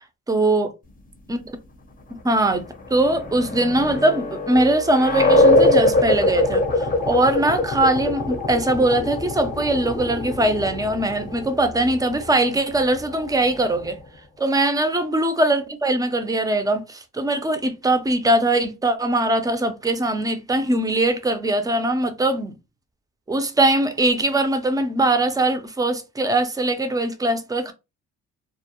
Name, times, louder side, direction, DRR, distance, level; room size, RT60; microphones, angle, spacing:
voice 1, 0.3-0.7 1.3-1.6 2.2-14.0 14.4-22.5 23.3-27.7, right 1 dB, 10° right, 0.4 m, -21 dB
sound 1, 2.6-14.0, left 1 dB, 25° left, 0.6 m, -23 dB
2.2 x 2.0 x 2.8 m
cardioid pair, 90°, 30 cm